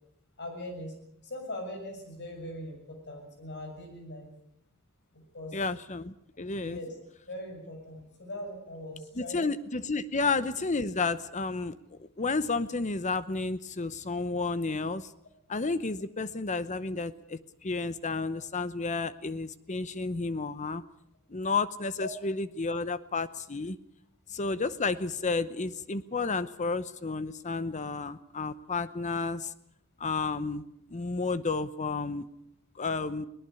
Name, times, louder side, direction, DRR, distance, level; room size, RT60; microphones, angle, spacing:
voice 1, 0.4-0.9 1.2-4.3 5.1-5.6 6.6-6.9 7.3-9.4 22.0-22.1, left 1 dB, 50° left, 4 dB, 6.9 m, -40 dB
voice 2, 5.5-6.8 9.2-15.1 15.5-20.8 21.3-23.8 24.3-29.5 30.0-30.6 30.9-32.3 32.8-33.3, left 3 dB, 35° left, 14 dB, 0.8 m, -31 dB
22.5 x 19.0 x 7.0 m, 0.77 s
head